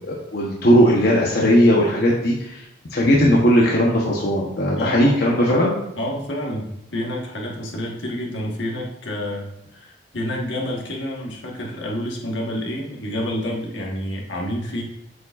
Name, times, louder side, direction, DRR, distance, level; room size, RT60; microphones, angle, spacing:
voice 1, 0.1-2.6 2.9-5.8, equal, 55° left, -3 dB, 0.9 m, -17 dB
voice 2, 4.7-5.5 6.0-9.5 9.7-14.8, left 1 dB, 80° left, -1 dB, 1.4 m, -29 dB
7.9 x 5.0 x 2.4 m, 0.83 s
head